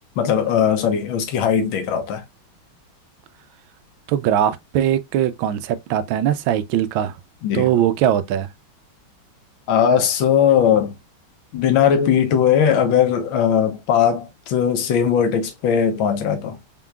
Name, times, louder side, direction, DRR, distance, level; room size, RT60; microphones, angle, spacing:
voice 1, 0.2-2.2 7.4-7.7 9.7-10.9 11.5-16.6, left 8 dB, 75° left, 1.7 m, -19 dB
voice 2, 4.1-7.2 7.5-8.5, right 10 dB, 80° right, 1.4 m, -20 dB
4.7 x 3.7 x 2.3 m
omnidirectional pair, 2.2 m